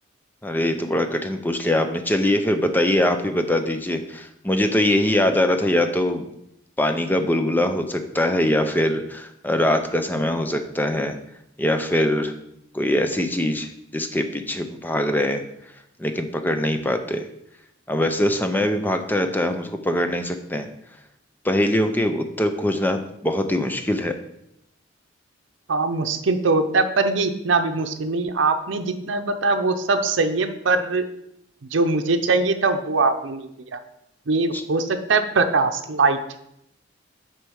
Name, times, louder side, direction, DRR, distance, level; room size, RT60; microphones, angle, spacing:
voice 1, 0.4-6.3 6.8-11.1 11.6-12.3 12.7-15.4 16.0-17.3 17.9-20.7 21.4-24.1 34.5-34.6, left 1 dB, 10° left, 7 dB, 0.6 m, -22 dB
voice 2, 25.7-31.1 31.7-33.8 34.3-36.2, right 3 dB, 85° right, 6 dB, 0.6 m, -22 dB
6.5 x 4.5 x 6.3 m, 0.79 s
head